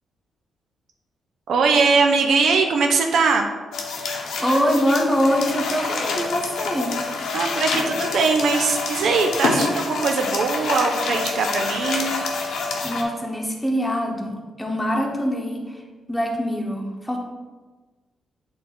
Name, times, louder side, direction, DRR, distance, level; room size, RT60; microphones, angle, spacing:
voice 1, 1.5-3.5 7.3-12.1, right 4 dB, 75° right, 3 dB, 0.6 m, -21 dB
sound 1, 3.7-13.0, left 4 dB, 85° left, 0.9 m, -27 dB
voice 2, 4.4-6.9 12.8-15.8 16.1-17.2, equal, 5° left, 0 dB, 1.1 m, -24 dB
8.1 x 3.4 x 3.9 m, 1.3 s
cardioid pair, 105°, 0 cm